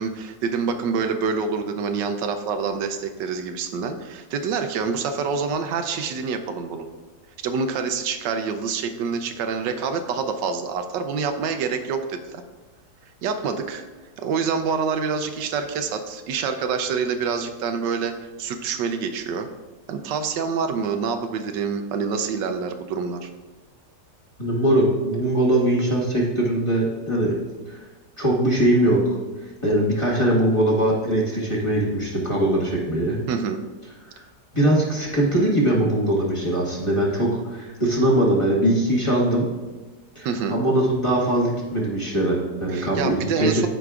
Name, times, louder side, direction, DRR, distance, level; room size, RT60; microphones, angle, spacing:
voice 1, 0.0-6.9 7.4-12.4 13.2-13.8 14.2-19.5 19.9-23.3 33.3-33.6 40.2-40.6 42.7-43.7, right 5 dB, 85° right, 7 dB, 1.3 m, -26 dB
voice 2, 24.4-27.4 27.7-27.8 28.2-29.0 29.6-33.2 34.5-39.5 40.1-43.7, right 1 dB, 20° left, -5 dB, 1.3 m, -21 dB
13.5 x 5.0 x 2.4 m, 1.3 s
omnidirectional pair, 1.9 m